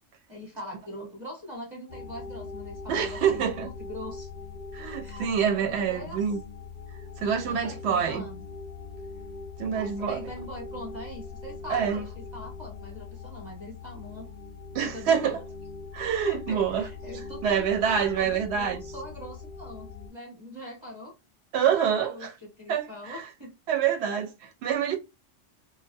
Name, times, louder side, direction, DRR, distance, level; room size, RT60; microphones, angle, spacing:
voice 1, 0.3-4.3 5.0-5.3 5.6-6.3 7.2-8.4 9.7-14.3 14.8-15.4 16.2-21.1 21.6-23.5, left 1 dB, 25° right, 0.9 m, -42 dB
sound 1, 1.9-20.1, left 4 dB, 55° left, 0.5 m, -41 dB
voice 2, 2.9-3.7 4.7-6.4 7.2-8.2 9.6-10.2 11.7-12.0 14.7-15.4 15.9-16.9 17.4-18.8 21.5-22.3 22.7-23.2 23.7-25.0, right 8 dB, 65° right, 0.8 m, -26 dB
2.2 x 2.1 x 2.6 m
omnidirectional pair, 1.3 m